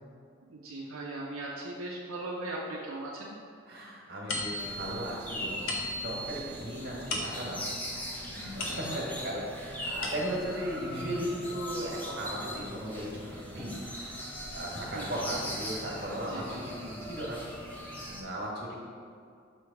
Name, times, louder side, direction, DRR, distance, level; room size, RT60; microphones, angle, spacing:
voice 1, 0.5-3.4 8.6-9.0 14.9-15.2 16.2-16.6, right 2 dB, 80° right, -4 dB, 0.6 m, -39 dB
voice 2, 3.7-5.7 6.0-7.7 8.3-13.8 14.5-17.4 18.0-18.7, equal, 50° right, -3 dB, 1.3 m, -36 dB
sound 1, 4.3-9.3 9.7-10.6, left 2 dB, 70° left, 0.8 m, -38 dB
sound 2, 4.6-18.2, equal, 10° left, 0.6 m, -40 dB
6.1 x 3.2 x 4.8 m, 2.4 s
head